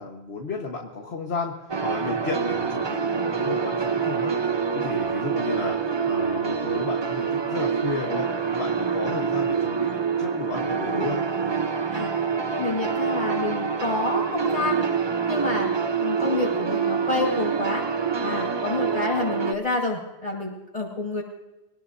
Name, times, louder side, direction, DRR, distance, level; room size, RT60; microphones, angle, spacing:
voice 1, 0.0-4.4 4.7-11.2, left 4 dB, 65° left, 0 dB, 1.7 m, -33 dB
sound 1, 1.7-19.5, right 6 dB, 30° right, 0.6 m, -26 dB
voice 2, 12.6-14.9 15.3-15.7 16.0-17.8 18.2-21.2, left 2 dB, 35° left, -2 dB, 5.8 m, -28 dB
24.5 x 18.5 x 2.7 m, 1.0 s
omnidirectional pair, 1.1 m